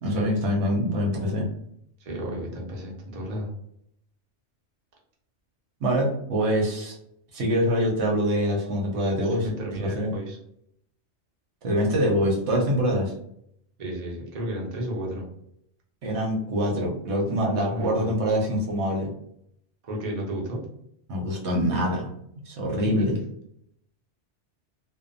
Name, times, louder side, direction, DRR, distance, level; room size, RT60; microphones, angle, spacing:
voice 1, 0.0-1.5 5.8-7.0 7.3-9.5 9.8-10.1 11.6-13.1 16.0-19.1 21.1-22.1 22.5-23.2, equal, 75° right, -1 dB, 0.9 m, -24 dB
voice 2, 2.0-3.5 9.2-10.4 13.8-15.3 17.3-18.1 19.8-20.6 22.8-23.2, equal, 45° right, -2 dB, 0.6 m, -33 dB
2.6 x 2.1 x 2.5 m, 0.73 s
omnidirectional pair, 1.2 m